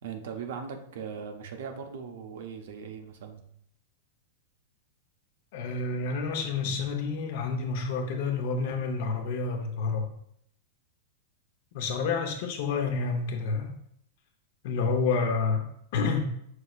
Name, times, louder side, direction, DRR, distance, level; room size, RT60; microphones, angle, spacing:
voice 1, 0.0-3.4, right 6 dB, 70° right, 5 dB, 0.6 m, -39 dB
voice 2, 5.5-10.1 11.7-13.7 14.6-16.3, left 4 dB, 55° left, 4 dB, 0.8 m, -29 dB
5.6 x 3.1 x 2.4 m, 0.70 s
supercardioid pair, 155°, 0 cm